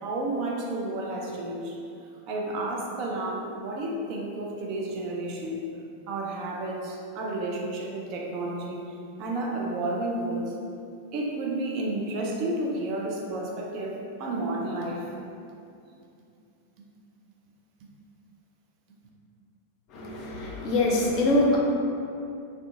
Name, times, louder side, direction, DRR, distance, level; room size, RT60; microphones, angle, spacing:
voice 1, 0.0-1.7 2.3-5.7 6.1-8.8 9.2-10.5 11.1-15.1, right 2 dB, 40° right, -1 dB, 0.4 m, -31 dB
voice 2, 19.9-21.6, left 2 dB, 40° left, -2 dB, 0.4 m, -24 dB
2.4 x 2.1 x 2.6 m, 2.6 s
figure-of-eight pair, 90°, 0 cm